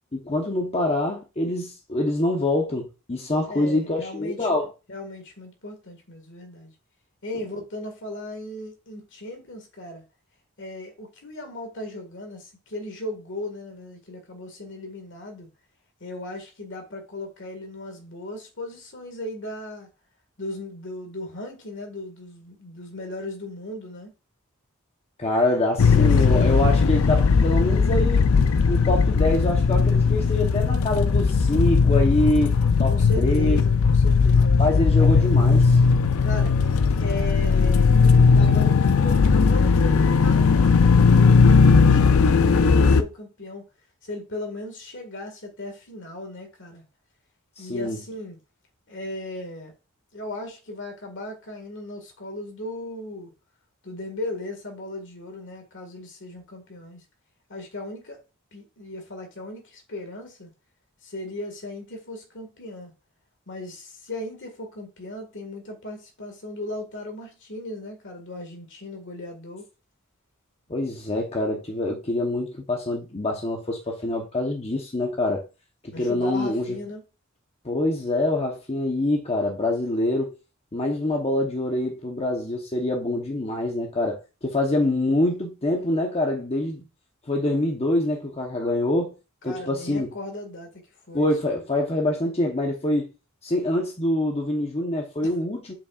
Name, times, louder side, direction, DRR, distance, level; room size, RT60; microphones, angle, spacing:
voice 1, 0.1-4.7 25.2-28.3 28.7-33.6 34.6-35.8 47.6-48.0 70.7-75.4 75.8-76.8 77.6-80.3 80.7-86.8 87.3-89.1 89.4-90.1 91.1-93.1 93.4-95.7, left 1 dB, 30° left, 1.0 m, -25 dB
voice 2, 3.5-4.5 4.9-6.7 7.2-10.0 10.6-15.5 16.0-19.9 20.4-24.1 25.8-26.6 32.9-35.5 36.2-36.6 37.0-38.0 38.3-43.6 44.0-46.8 47.6-48.4 48.9-49.7 50.1-53.3 53.8-57.0 57.5-58.2 58.5-60.5 61.0-62.9 63.5-69.6 75.9-77.0 89.4-91.6 95.2-95.3, left 1 dB, 60° left, 1.8 m, -37 dB
sound 1, 25.8-43.0, left 5 dB, 80° left, 0.5 m, -18 dB
7.1 x 5.5 x 2.4 m
head